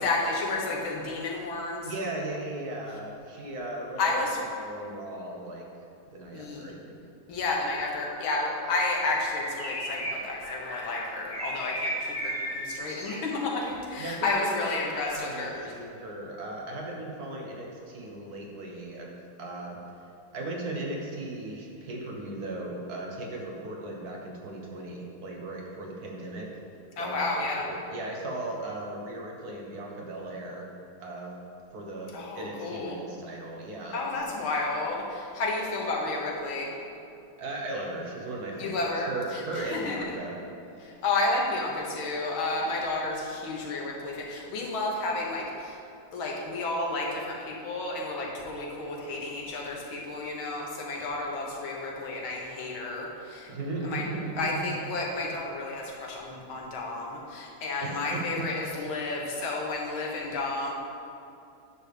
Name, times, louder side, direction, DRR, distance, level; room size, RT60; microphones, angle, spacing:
voice 1, 0.0-1.8 4.0-4.4 6.3-6.7 7.3-15.7 27.0-27.6 32.1-33.0 33.9-36.7 38.6-40.2 40.8-45.8 46.1-53.5 53.8-54.1 54.4-60.7, left 2 dB, 85° left, -2 dB, 1.9 m, -31 dB
voice 2, 1.8-4.2 4.6-5.7 6.1-7.0 14.0-19.8 20.3-26.5 27.0-30.7 31.0-31.4 31.7-34.3 37.4-40.4 53.5-54.8 57.8-58.4, right 2 dB, 60° right, -1 dB, 1.2 m, -37 dB
Bird, 8.8-13.7, right 1 dB, 55° left, 2.7 m, -36 dB
9.2 x 3.4 x 6.6 m, 2.6 s
omnidirectional pair, 2.2 m